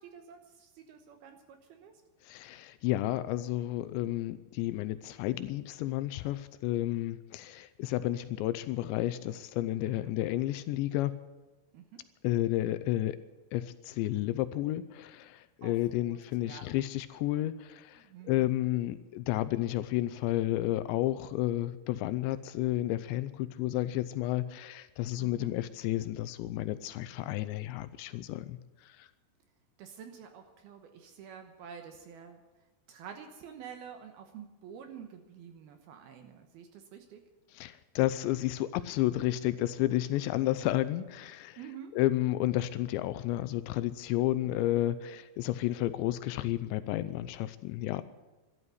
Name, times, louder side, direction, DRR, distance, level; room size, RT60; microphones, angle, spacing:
voice 1, 0.0-1.9 9.8-10.1 11.7-12.0 15.6-15.7 16.0-16.6 18.0-18.5 25.2-25.5 29.8-32.4 32.9-37.2 41.6-41.9 44.4-44.8, right 8 dB, 70° right, 6 dB, 2.6 m, -48 dB
voice 2, 2.2-11.1 12.2-13.2 13.5-28.6 28.8-29.1 37.5-41.6 41.9-48.0, left 15 dB, 80° left, 13 dB, 2.7 m, -31 dB
12.5 x 12.5 x 8.1 m, 1.1 s
omnidirectional pair, 5.4 m